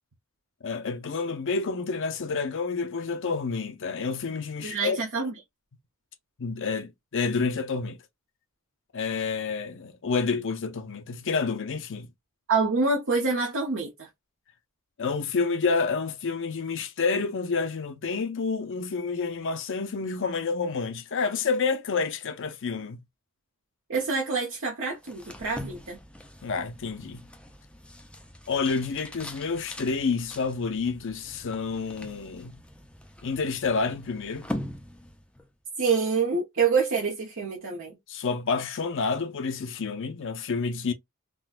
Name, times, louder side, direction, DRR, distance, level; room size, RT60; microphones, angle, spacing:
voice 1, 0.6-5.3 6.4-8.0 8.9-12.1 15.0-23.0 26.4-27.2 28.5-32.5 33.2-34.5 38.1-40.9, left 4 dB, 60° left, 0.6 m, -29 dB
voice 2, 4.6-5.3 12.5-14.1 23.9-26.0 35.8-38.0, right 4 dB, 60° right, 0.8 m, -26 dB
sound 1, 25.0-35.5, left 1 dB, 5° left, 0.5 m, -42 dB
3.8 x 2.2 x 2.4 m
head